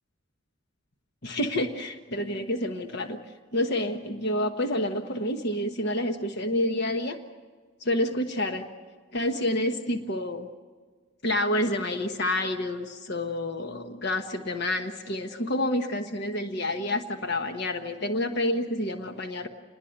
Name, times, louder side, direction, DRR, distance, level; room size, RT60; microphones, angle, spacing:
voice 1, 1.2-3.2 3.5-7.2 7.8-8.7 9.1-10.5 11.2-19.5, left 1 dB, 55° left, 6 dB, 1.3 m, -28 dB
28.0 x 20.5 x 6.6 m, 1.5 s
head